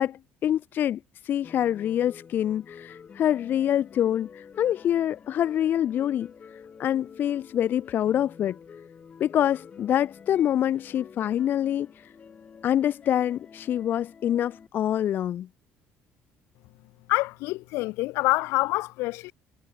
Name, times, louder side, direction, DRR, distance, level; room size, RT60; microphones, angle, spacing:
voice 1, 0.0-6.3 6.8-8.6 9.2-11.9 12.6-15.5, left 10 dB, 50° left, 0.5 m, -26 dB
sound 1, 1.4-14.7, left 6 dB, 30° left, 3.8 m, -49 dB
voice 2, 17.1-19.3, left 21 dB, 90° left, 1.7 m, -26 dB
cardioid pair, 135°, 4 cm